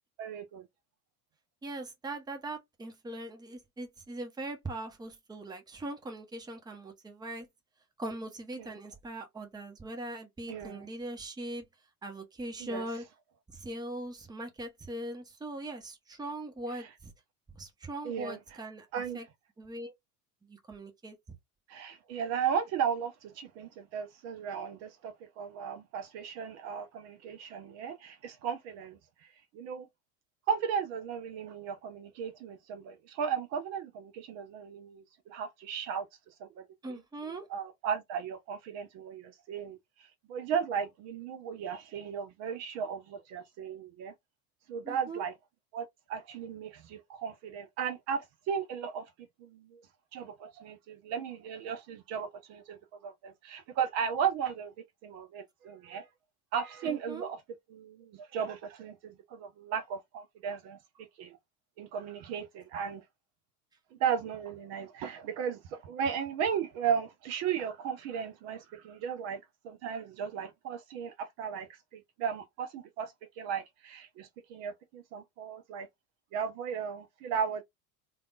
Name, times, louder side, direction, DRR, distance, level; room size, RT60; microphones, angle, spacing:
voice 1, 0.2-0.6 10.5-10.8 12.6-12.8 18.0-18.4 18.9-19.2 21.7-29.0 29.5-29.9 30.5-36.1 36.4-37.0 37.5-44.1 44.7-45.3 45.7-49.0 49.4-49.8 50.1-54.7 55.0-56.1 56.5-57.4 57.7-60.8 61.2-61.4 61.8-63.0 64.0-69.4 69.6-71.7 71.9-75.9 76.3-77.6, right 7 dB, 35° right, 0.5 m, -35 dB
voice 2, 1.6-7.5 8.0-11.6 12.0-13.0 13.5-17.1 17.5-19.3 19.6-19.9 20.4-21.2 36.8-37.5 44.8-45.2 56.8-57.3, right 2 dB, 10° right, 0.8 m, -41 dB
3.4 x 2.3 x 2.4 m
figure-of-eight pair, 80°, 47 cm